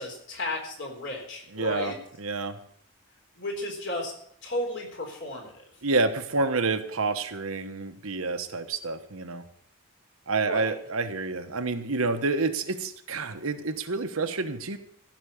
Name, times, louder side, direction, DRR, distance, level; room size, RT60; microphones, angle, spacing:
voice 1, 0.0-1.9 3.4-4.1 4.4-5.6 10.4-10.7, left 1 dB, 55° left, 1 dB, 4.0 m, -34 dB
voice 2, 1.5-1.9 2.2-2.6 5.8-9.4 10.3-14.8, right 3 dB, 80° right, 7 dB, 1.2 m, -28 dB
15.0 x 6.2 x 8.6 m, 0.67 s
head